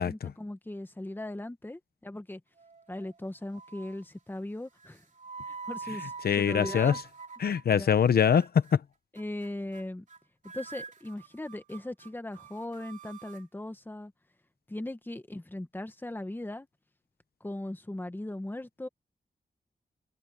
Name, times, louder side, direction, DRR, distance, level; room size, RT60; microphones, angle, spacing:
voice 1, 0.0-2.4 2.9-5.0 5.5-7.0 7.7-8.0 9.1-10.0 10.5-14.1 14.7-16.7 17.4-18.9, left 1 dB, 15° left, 1.5 m, -38 dB
sound 1, 2.6-3.2 3.5-4.0 4.8-8.1 8.4-8.7 9.2-9.5 9.7-10.2 10.4-13.5, right 4 dB, 55° right, 2.8 m, -44 dB
voice 2, 6.2-6.9 7.4-8.8, left 7 dB, 80° left, 0.8 m, -23 dB
wide cardioid pair, 110°, 16 cm